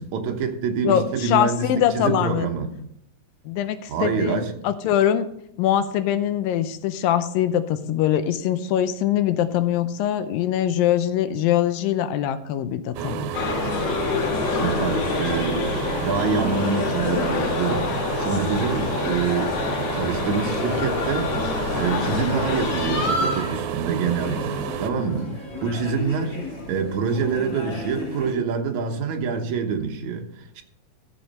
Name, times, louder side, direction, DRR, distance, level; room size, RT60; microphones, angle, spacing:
voice 1, 0.0-1.7 1.9-2.7 3.9-4.5 14.5-17.9 18.2-19.5 19.9-21.3 21.8-25.3 25.6-26.4 26.7-30.6, right 6 dB, 65° right, 2.2 m, -26 dB
voice 2, 0.8-2.5 3.5-5.3 5.6-13.3, left 10 dB, 85° left, 2.4 m, -23 dB
sound 1, 13.0-24.9, right 10 dB, 85° right, 2.5 m, -30 dB
sound 2, 13.3-23.1, left 6 dB, 70° left, 1.9 m, -27 dB
sound 3, 20.9-28.3, left 1 dB, 25° left, 3.3 m, -32 dB
14.5 x 6.1 x 5.4 m
omnidirectional pair, 4.1 m